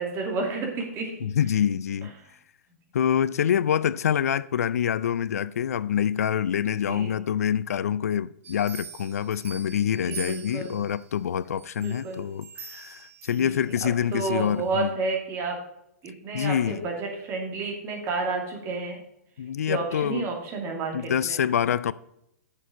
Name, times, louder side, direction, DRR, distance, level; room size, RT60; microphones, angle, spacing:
voice 1, 0.0-1.1 6.9-7.2 10.0-10.8 11.8-12.3 13.4-15.6 16.0-19.0 19.7-21.4, right 3 dB, 30° right, 2.5 m, -31 dB
voice 2, 1.2-2.1 2.9-14.9 16.3-16.9 19.4-20.3 20.9-21.9, left 9 dB, 70° left, 0.4 m, -26 dB
sound 1, 8.4-11.0 11.6-13.9 14.4-14.5, right 7 dB, 55° right, 1.6 m, -43 dB
7.4 x 6.5 x 5.1 m
hypercardioid pair, 125°, 9 cm